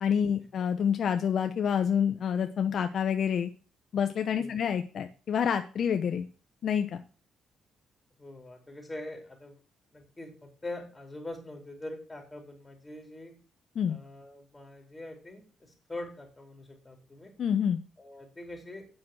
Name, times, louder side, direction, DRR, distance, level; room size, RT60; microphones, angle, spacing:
voice 1, 0.0-3.5 3.9-6.3 6.6-7.0 13.8-14.0 17.4-17.8, left 8 dB, 60° left, 8 dB, 0.9 m, -28 dB
voice 2, 8.2-9.6 9.9-13.3 13.9-17.3 18.0-18.9, left 2 dB, 15° left, 3 dB, 4.4 m, -43 dB
8.6 x 6.4 x 7.3 m, 0.37 s
cardioid pair, 90°, 0 cm